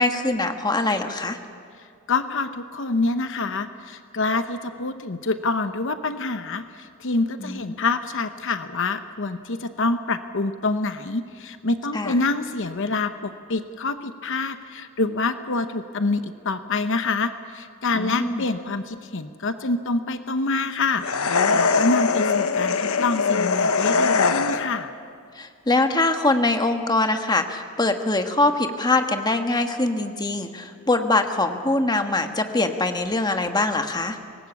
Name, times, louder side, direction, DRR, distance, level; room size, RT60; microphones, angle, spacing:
voice 1, 0.0-1.4 7.4-7.6 11.9-12.1 17.9-18.4 25.4-34.2, left 2 dB, 20° left, 6 dB, 1.3 m, -23 dB
voice 2, 2.1-24.9, left 3 dB, 60° left, 9 dB, 0.9 m, -26 dB
sound 1, 21.0-24.9, left 4 dB, 85° left, 1.0 m, -21 dB
24.5 x 19.5 x 8.3 m, 2.3 s
head